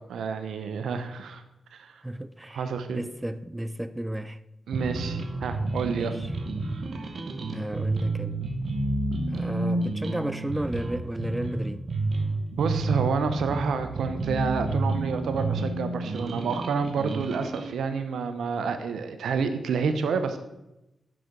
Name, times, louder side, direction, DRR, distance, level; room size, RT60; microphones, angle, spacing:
voice 1, 0.1-1.4 1.8-1.9 2.5-3.0 4.7-6.1 12.5-20.4, right 5 dB, 80° right, 0.7 m, -29 dB
voice 2, 2.0-4.4 5.9-6.3 7.5-8.4 9.3-11.8, right 1 dB, 15° right, 0.4 m, -33 dB
sound 1, 4.7-17.7, right 2 dB, 60° right, 1.2 m, -30 dB
6.2 x 5.9 x 6.6 m
supercardioid pair, 40°, 0 cm